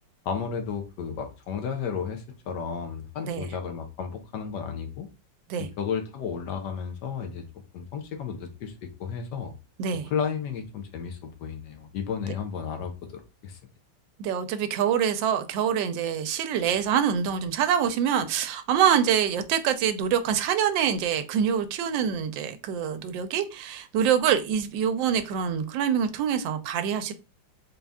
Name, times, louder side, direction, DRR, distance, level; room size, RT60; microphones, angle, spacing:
voice 1, 0.2-5.1 5.6-7.4 7.7-8.7 9.0-9.5 10.0-13.6, left 6 dB, 70° left, 1.2 m, -33 dB
voice 2, 14.2-27.1, right 8 dB, 80° right, 1.2 m, -25 dB
4.0 x 2.3 x 3.4 m
omnidirectional pair, 2.0 m